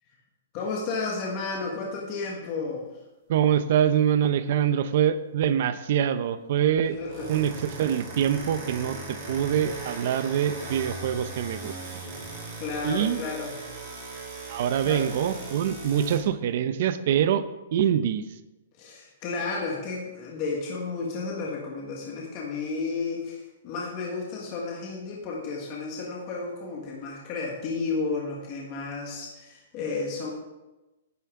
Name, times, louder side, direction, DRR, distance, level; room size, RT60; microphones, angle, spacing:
voice 1, 0.5-2.9 7.0-7.4 12.6-13.5 14.8-15.0 18.8-30.3, left 4 dB, 25° left, -2 dB, 1.5 m, -32 dB
voice 2, 3.3-7.0 7.3-12.0 12.8-13.2 14.5-17.4 17.7-18.2, right 9 dB, 40° right, 13 dB, 0.6 m, -25 dB
sound 1, 6.9-16.2, right 3 dB, 20° right, 2.9 m, -38 dB
10.5 x 10.5 x 3.7 m, 1.0 s
hypercardioid pair, 180°, 0 cm